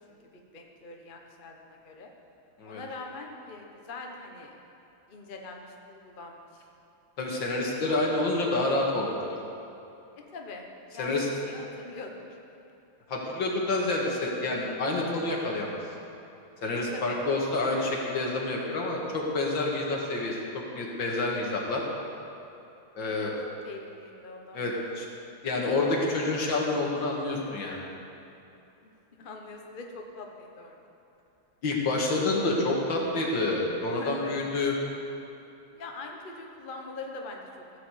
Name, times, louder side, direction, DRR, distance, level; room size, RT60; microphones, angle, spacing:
voice 1, 0.1-2.1 2.6-4.6 5.1-6.6 10.3-12.4 16.9-17.2 23.0-23.3 23.6-24.6 29.1-30.8 33.9-34.4 35.7-37.8, left 3 dB, 35° left, 1 dB, 0.9 m, -43 dB
voice 2, 7.2-9.1 11.0-11.3 13.1-15.8 16.6-21.8 23.0-23.4 24.5-25.1 25.4-27.9 31.6-34.7, left 2 dB, 65° left, -2 dB, 2.5 m, -28 dB
15.5 x 6.7 x 7.9 m, 2.8 s
omnidirectional pair, 2.3 m